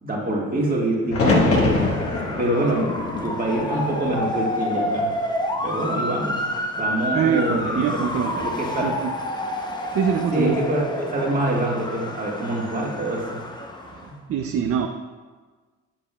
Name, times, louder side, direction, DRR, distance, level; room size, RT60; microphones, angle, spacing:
voice 1, 0.0-1.8 2.4-2.9 3.2-5.1 5.6-6.4 6.8-8.0 8.4-8.9 10.3-13.4 14.1-14.2, right 1 dB, 30° right, -3 dB, 1.7 m, -25 dB
sound 1, 1.1-5.1 5.5-6.3 8.1-8.6, left 2 dB, 50° left, 1.3 m, -25 dB
Motor vehicle (road) / Siren, 1.4-14.1, left 1 dB, 15° left, 0.7 m, -29 dB
voice 2, 7.1-8.5 8.8-9.1 9.9-10.6 13.9-14.9, right 7 dB, 50° right, 5 dB, 0.4 m, -24 dB
7.4 x 6.6 x 2.3 m, 1.4 s
cardioid pair, 90°, 30 cm